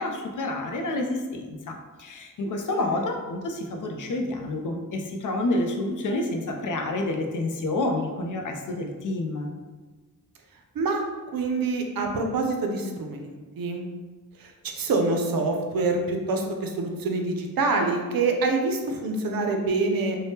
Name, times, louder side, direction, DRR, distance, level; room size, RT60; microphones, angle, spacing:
voice 1, 0.0-9.5, left 2 dB, 60° left, 3 dB, 0.4 m, -29 dB
voice 2, 11.3-13.8 14.4-20.2, right 3 dB, 80° right, 3 dB, 0.5 m, -26 dB
2.7 x 2.1 x 3.4 m, 1.3 s
wide cardioid pair, 125°, 35 cm